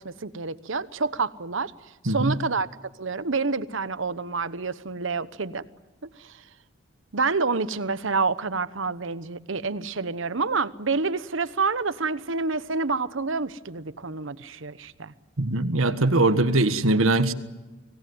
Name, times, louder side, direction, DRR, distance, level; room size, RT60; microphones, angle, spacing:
voice 1, 0.0-1.7 2.0-2.7 3.0-5.6 6.2-6.3 7.1-15.1, right 4 dB, 70° right, 1.0 m, -28 dB
voice 2, 2.1-2.4 15.4-17.3, right 2 dB, 90° right, 1.6 m, -21 dB
25.5 x 18.5 x 9.5 m
head